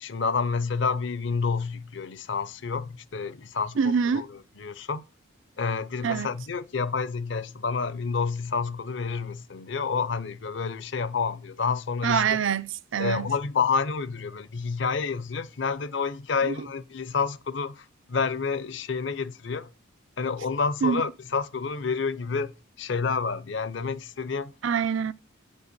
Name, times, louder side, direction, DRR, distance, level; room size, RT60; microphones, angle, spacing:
voice 1, 0.0-5.0 5.6-12.3 13.0-19.7 20.2-22.5 22.8-24.5, left 5 dB, 60° left, 0.6 m, -29 dB
voice 2, 3.8-4.3 6.0-6.3 12.0-13.3 16.4-16.5 20.8-21.0 24.6-25.1, right 6 dB, 65° right, 0.5 m, -25 dB
9.0 x 5.5 x 8.0 m
head